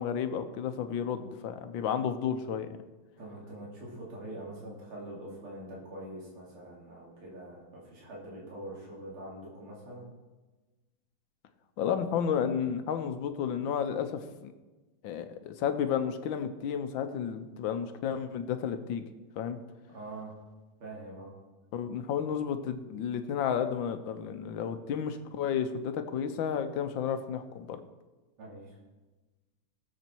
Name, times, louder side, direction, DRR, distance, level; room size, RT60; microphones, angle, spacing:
voice 1, 0.0-2.7 11.8-14.5 15.0-19.0 19.4-19.6 21.7-27.8, left 8 dB, 70° left, 9 dB, 1.5 m, -32 dB
voice 2, 3.2-10.1 19.9-20.3 20.8-21.3 28.4-28.8, right 1 dB, 85° right, -4 dB, 3.7 m, -44 dB
19.0 x 7.3 x 4.5 m, 1.2 s
omnidirectional pair, 2.3 m